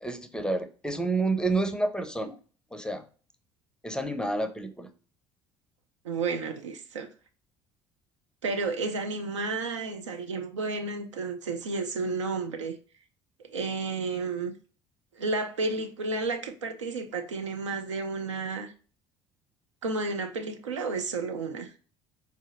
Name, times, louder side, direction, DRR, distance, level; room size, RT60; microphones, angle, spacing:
voice 1, 0.0-2.4 2.7-3.0 3.8-4.9, right 2 dB, 5° left, 0.5 m, -29 dB
voice 2, 6.0-7.1 8.4-12.7 13.5-14.5 15.2-18.7 19.8-21.7, right 3 dB, 85° right, 0.4 m, -31 dB
4.2 x 2.6 x 2.4 m
figure-of-eight pair, 60°, 15 cm